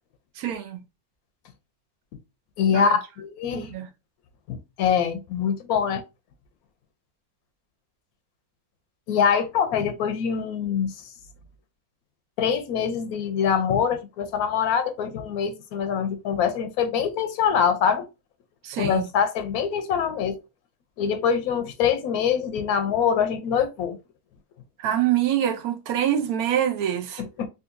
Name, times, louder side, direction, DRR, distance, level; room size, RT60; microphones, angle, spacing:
voice 1, 0.4-0.8 2.7-2.9 3.5-3.9 18.6-19.0 24.8-27.2, right 10 dB, 85° right, 1.1 m, -25 dB
voice 2, 2.6-3.7 4.5-6.0 9.1-10.9 12.4-18.1 18.8-20.4 21.0-24.0 27.2-27.5, left 7 dB, 90° left, 1.1 m, -24 dB
3.8 x 2.5 x 2.5 m
omnidirectional pair, 1.5 m